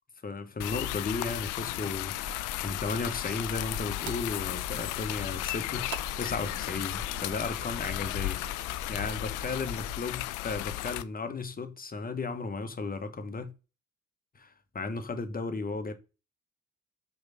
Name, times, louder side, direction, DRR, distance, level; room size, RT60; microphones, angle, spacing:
voice 1, 0.2-5.9 6.2-8.4 8.9-13.5 14.3-15.9, left 3 dB, 25° left, 1.1 m, -35 dB
sound 1, 0.6-11.0, left 17 dB, 60° left, 0.5 m, -34 dB
sound 2, 2.1-10.1, equal, 25° right, 1.9 m, -46 dB
sound 3, 2.4-7.8, right 11 dB, 55° right, 0.7 m, -50 dB
5.0 x 4.8 x 4.2 m
figure-of-eight pair, 40°, 34 cm